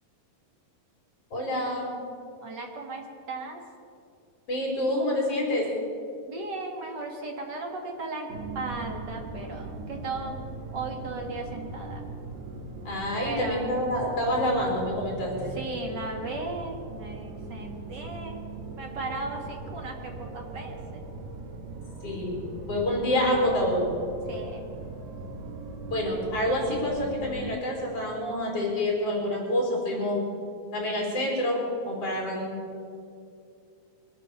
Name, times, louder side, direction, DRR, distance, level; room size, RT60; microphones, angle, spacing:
voice 1, 1.3-1.9 4.5-5.7 12.8-15.5 22.0-22.4 22.7-23.9 25.9-30.2 30.7-32.6, left 1 dB, 40° left, -2 dB, 4.8 m, -27 dB
voice 2, 2.4-3.6 6.3-8.3 8.5-10.4 10.7-12.0 13.2-13.8 15.5-18.4 18.7-21.0 24.3-24.7, right 3 dB, 45° right, 1 dB, 1.5 m, -36 dB
sound 1, 8.3-27.5, right 3 dB, 70° right, 3.0 m, -40 dB
23.0 x 8.9 x 6.9 m, 2.5 s
omnidirectional pair, 4.1 m